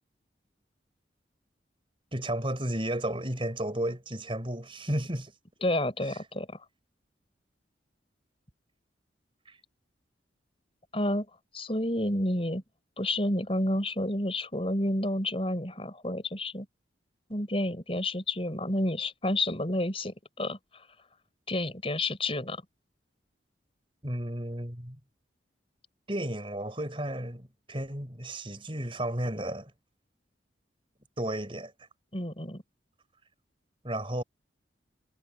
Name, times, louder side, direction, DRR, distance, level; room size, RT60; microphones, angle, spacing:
voice 1, 2.1-5.3 9.5-9.6 24.0-25.0 26.1-29.7 31.2-31.7 33.8-34.2, right 1 dB, 30° right, 5.1 m, -33 dB
voice 2, 5.6-6.6 10.9-11.3 11.5-12.6 13.0-16.7 17.3-20.9 21.5-22.6 32.1-32.6, left 1 dB, 30° left, 5.4 m, -30 dB
head